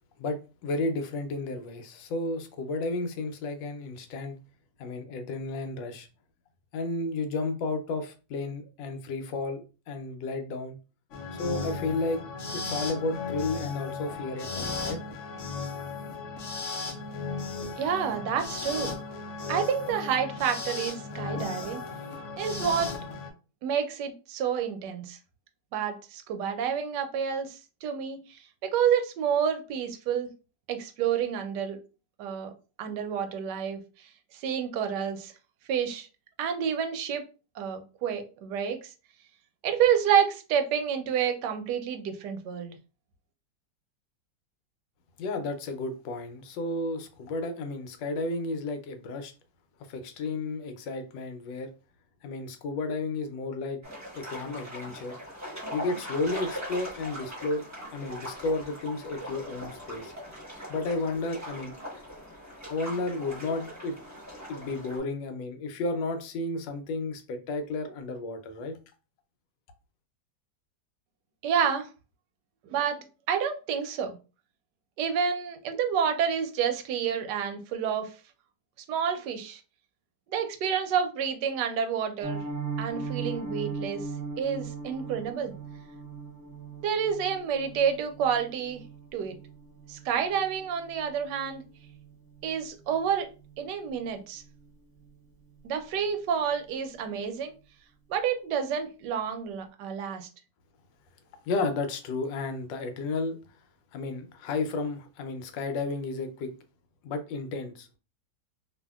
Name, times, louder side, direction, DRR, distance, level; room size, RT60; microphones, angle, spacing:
voice 1, 0.2-4.4 4.8-6.1 6.7-10.8 11.4-12.2 12.5-15.0 45.2-49.3 49.9-51.7 52.2-53.8 54.1-55.2 55.7-57.6 57.9-60.1 60.7-61.7 62.7-64.0 64.5-68.8 101.5-103.3 103.9-106.5 107.0-108.0, left 3 dB, 85° left, 1.3 m, -32 dB
sound 1, 11.1-23.3, left 4 dB, 70° left, 0.7 m, -36 dB
voice 2, 17.8-18.9 19.5-21.8 22.4-22.9 23.6-25.2 25.7-30.3 30.7-31.8 32.2-32.5 32.8-35.3 35.7-36.1 36.4-37.3 37.6-38.9 39.6-42.8 71.4-71.9 72.6-74.2 75.0-78.1 78.9-79.6 80.3-82.4 82.8-84.1 84.4-85.5 86.8-88.8 89.1-89.3 89.9-91.6 92.4-94.4 95.6-97.5 98.1-100.3, right 8 dB, 75° right, 1.1 m, -29 dB
sound 2, 53.8-65.0, equal, 10° right, 0.8 m, -41 dB
Piano, 82.2-93.1 93.4-93.6 93.9-94.1 94.4-94.7 95.0-95.1, right 4 dB, 5° left, 0.3 m, -39 dB
2.7 x 2.7 x 2.2 m
omnidirectional pair, 2.0 m